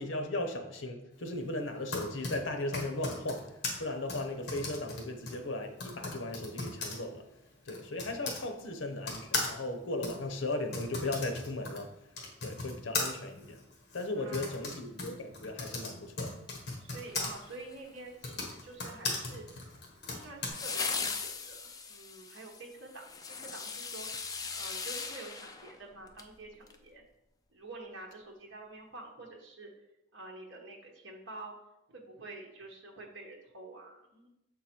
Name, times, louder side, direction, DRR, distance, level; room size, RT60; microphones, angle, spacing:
voice 1, 0.0-7.3 7.6-12.0 12.4-13.6 13.9-16.4, left 2 dB, 75° left, 7 dB, 0.8 m, -37 dB
Typing, 1.6-8.4 9.0-17.3 18.1-20.5, left 3 dB, 55° left, 1.3 m, -38 dB
voice 2, 14.2-14.7 16.8-19.5 19.9-24.1 24.5-27.0 27.5-29.7 30.1-31.5 31.9-34.3, right 2 dB, 65° right, 0 dB, 1.2 m, -48 dB
sound 1, 17.1-18.0 20.5-26.3 26.7-26.8, left 5 dB, 20° left, 0.4 m, -39 dB
6.6 x 3.9 x 4.4 m, 0.87 s
head